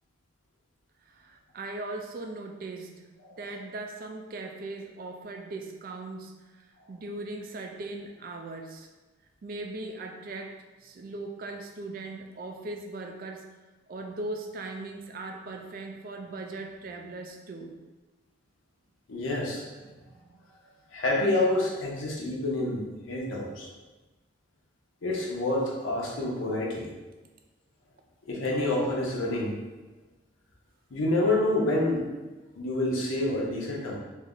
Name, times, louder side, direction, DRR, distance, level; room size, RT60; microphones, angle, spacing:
voice 1, 1.1-3.1 3.4-8.9 9.4-13.5 13.9-17.8 19.8-20.2, right 2 dB, 45° right, 4 dB, 0.3 m, -39 dB
voice 2, 19.1-19.7 20.9-23.7 25.0-26.9 28.3-29.6 30.9-32.1 32.6-34.0, left 2 dB, 80° left, -2 dB, 0.7 m, -28 dB
3.2 x 2.1 x 3.7 m, 1.2 s
head